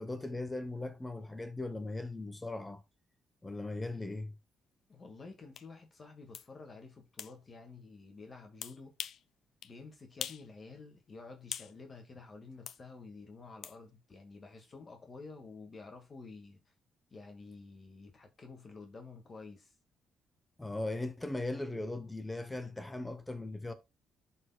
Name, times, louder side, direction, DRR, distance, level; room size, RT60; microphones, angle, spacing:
voice 1, 0.0-2.8 3.4-4.3 20.6-23.7, left 2 dB, 15° left, 0.8 m, -38 dB
voice 2, 4.9-8.9 9.6-16.6 17.1-19.7, left 3 dB, 35° left, 1.7 m, -50 dB
sound 1, 5.5-5.7 6.3-6.5 7.2-7.3 8.6-9.2 9.6-9.7 10.2-10.5 10.8-11.7 12.7-12.8 13.6-13.8, left 9 dB, 70° left, 0.5 m, -42 dB
11.0 x 4.4 x 2.2 m
cardioid pair, 90°, 0 cm